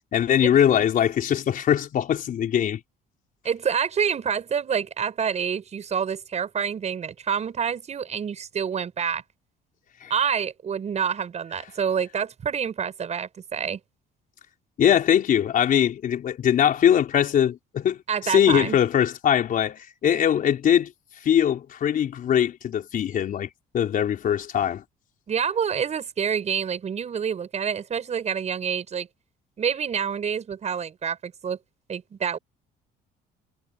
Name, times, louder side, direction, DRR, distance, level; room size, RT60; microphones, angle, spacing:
voice 1, 0.1-2.8 10.0-10.1 14.8-20.9 21.2-24.8, left 9 dB, 55° left, 4.3 m, -21 dB
voice 2, 3.4-9.2 10.1-13.8 18.1-18.8 25.3-29.1 29.6-31.6 31.9-32.4, right 7 dB, 40° right, 6.9 m, -27 dB
cardioid pair, 110°, 17 cm